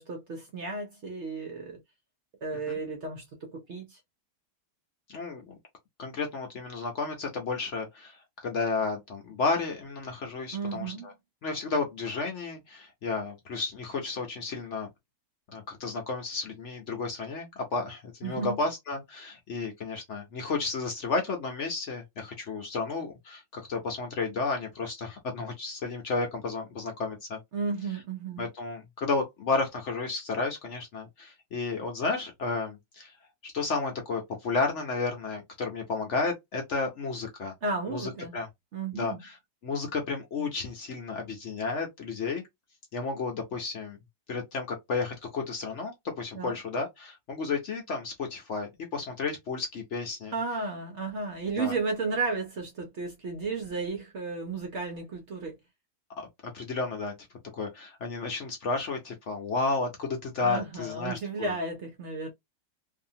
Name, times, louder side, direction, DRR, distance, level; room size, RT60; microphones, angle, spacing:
voice 1, 0.0-1.8 2.4-4.0 10.5-11.1 18.2-18.6 27.5-28.5 37.6-38.4 38.7-39.2 46.3-46.6 50.3-55.6 60.4-62.3, right 3 dB, 55° right, 0.8 m, -33 dB
voice 2, 5.1-5.5 6.0-11.1 11.4-14.9 15.5-27.4 28.4-33.1 33.4-37.5 37.9-38.5 38.9-39.4 39.6-42.4 42.9-44.0 44.3-50.3 51.6-51.7 56.2-56.3 56.5-57.1 57.5-61.5, left 4 dB, 55° left, 0.9 m, -32 dB
2.7 x 2.5 x 2.7 m
omnidirectional pair, 1.7 m